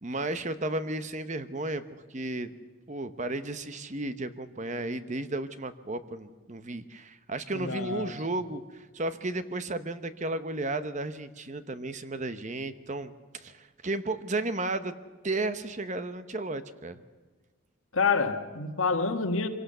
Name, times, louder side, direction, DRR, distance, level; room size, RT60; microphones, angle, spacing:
voice 1, 0.0-1.8 2.1-2.5 2.9-14.9 15.2-17.0, right 2 dB, 35° right, 0.9 m, -33 dB
voice 2, 7.5-8.1 17.9-19.5, left 4 dB, 70° left, 1.6 m, -27 dB
25.0 x 17.5 x 6.8 m
head